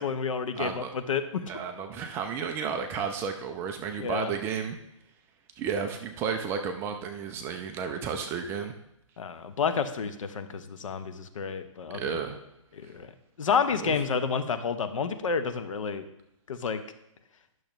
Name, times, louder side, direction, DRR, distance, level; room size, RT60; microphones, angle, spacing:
voice 1, 0.0-1.4 4.0-4.3 9.2-12.2 12.7-13.1 13.4-16.0 16.5-16.8, left 6 dB, 70° left, 9 dB, 0.8 m, -30 dB
voice 2, 0.6-0.9 1.5-4.8 5.6-8.7 11.9-12.4 12.8-12.9 13.8-14.0, right 6 dB, 15° right, 6 dB, 0.4 m, -32 dB
10.5 x 6.4 x 3.1 m, 0.81 s
hypercardioid pair, 145°, 17 cm